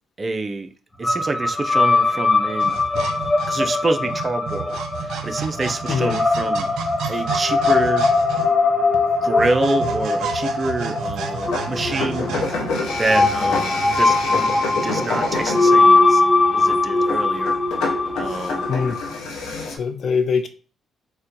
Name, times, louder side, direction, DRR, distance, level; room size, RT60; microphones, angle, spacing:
voice 1, 0.2-0.7 1.0-2.7 3.5-6.7 7.1-8.1 9.2-12.3 13.0-14.5 14.8-16.2 16.5-17.6 18.1-18.7, right 3 dB, 30° right, 7 dB, 0.4 m, -26 dB
sound 1, 1.0-19.2, left 3 dB, 20° left, 0.7 m, -21 dB
sound 2, 2.6-12.5, right 6 dB, 80° right, 0.5 m, -32 dB
voice 2, 5.9-6.2 18.7-19.0 19.7-20.5, left 5 dB, 55° left, 8 dB, 0.6 m, -22 dB
sound 3, 11.4-19.8, left 3 dB, 85° left, 0.8 m, -28 dB
4.2 x 2.1 x 2.6 m, 0.38 s
cardioid pair, 90°, 0 cm